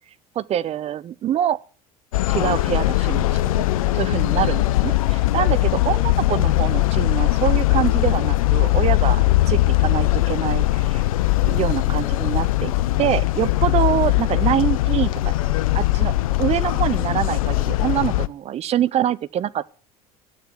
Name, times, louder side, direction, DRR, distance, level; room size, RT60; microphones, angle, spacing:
voice 1, 0.4-1.6 2.3-3.7 3.9-11.0 11.4-12.7 13.0-15.3 15.7-19.7, right 11 dB, 35° right, 0.6 m, -25 dB
sound 1, 2.1-18.3, left 16 dB, 65° left, 0.6 m, -20 dB
12.5 x 8.9 x 7.4 m
figure-of-eight pair, 65°, 19 cm